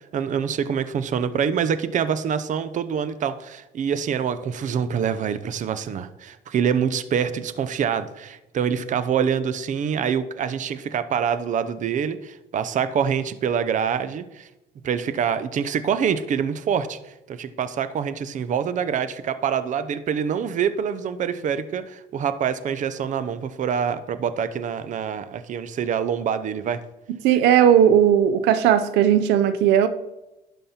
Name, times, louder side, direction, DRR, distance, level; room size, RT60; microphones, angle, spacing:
voice 1, 0.1-14.5 14.8-17.0 17.3-26.8, right 7 dB, 45° right, 0.7 m, -25 dB
voice 2, 27.2-29.9, right 9 dB, 90° right, 0.6 m, -17 dB
11.5 x 5.4 x 4.3 m
cardioid pair, 110°, 17 cm